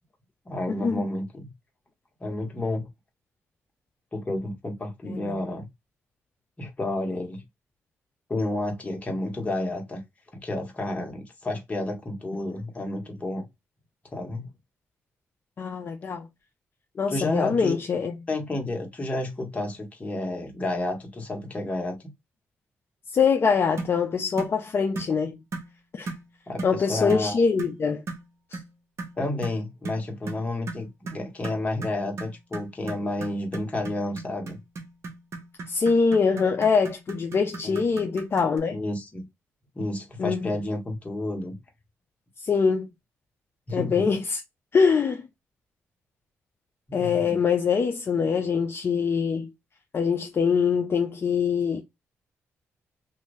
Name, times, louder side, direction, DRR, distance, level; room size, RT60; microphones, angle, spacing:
voice 1, 0.4-1.5 2.2-2.9 4.1-5.7 6.6-7.4 8.3-10.0 10.3-13.4 14.1-14.5 17.1-17.8 18.3-22.1 26.5-27.4 29.2-34.6 37.6-37.8 38.7-39.2 39.7-41.5 43.7-44.1 46.9-47.4, left 2 dB, 25° left, 1.5 m, -31 dB
voice 2, 5.0-5.4 15.6-16.3 17.0-18.3 23.1-25.4 25.9-26.1 26.6-28.0 28.5-28.6 35.7-38.8 40.2-40.5 42.4-42.9 43.7-44.4 44.7-45.3 46.9-49.5 49.9-51.8, left 5 dB, 50° left, 0.6 m, -24 dB
sound 1, 23.8-24.0 24.4-24.6 24.9-25.2 25.5-25.7 26.1-26.3 26.6-26.8 27.1-27.3 27.6-27.8 28.1-28.3 28.5-28.7 29.0-38.6, right 3 dB, 65° right, 1.0 m, -37 dB
2.8 x 2.7 x 3.3 m
cardioid pair, 75°, 5 cm